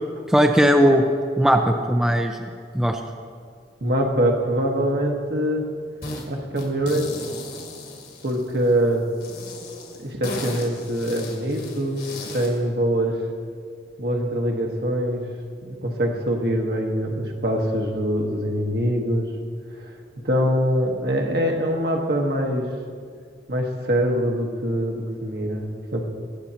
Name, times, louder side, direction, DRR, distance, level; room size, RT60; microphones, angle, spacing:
voice 1, 0.3-1.0 1.4-2.4 2.7-3.0, equal, 5° right, 3 dB, 0.4 m, -18 dB
voice 2, 3.8-5.7 6.3-7.1 8.2-9.0 10.0-13.2 14.0-15.2 15.6-19.2 20.2-22.7 23.5-26.0, equal, 65° right, 1 dB, 1.4 m, -23 dB
sound 1, 6.0-6.3 6.6-8.7 9.2-12.6, left 2 dB, 60° left, 1.8 m, -36 dB
20.0 x 8.1 x 2.9 m, 2.1 s
head